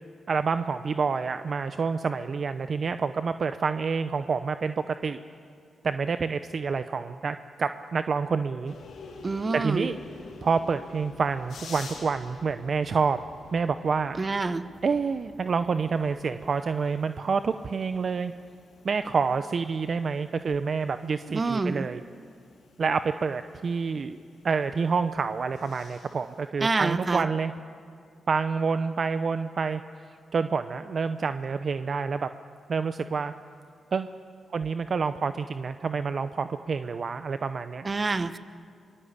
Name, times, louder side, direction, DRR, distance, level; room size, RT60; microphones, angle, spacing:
voice 1, 0.3-5.2 5.8-8.7 9.5-10.0 10.4-13.2 13.5-14.2 14.8-18.3 18.8-22.0 22.8-24.2 24.4-27.5 28.3-29.8 30.3-32.3 32.7-33.3 33.9-34.1 34.5-37.9, right 5 dB, 55° right, 10 dB, 0.7 m, -28 dB
sound 1, 8.6-26.5, left 4 dB, 80° left, 4.1 m, -49 dB
voice 2, 9.2-9.9 14.2-14.6 21.3-21.9 26.6-27.3 37.8-38.4, right 3 dB, 40° right, 12 dB, 1.2 m, -27 dB
24.5 x 21.5 x 8.3 m, 2.3 s
supercardioid pair, 50°, 0 cm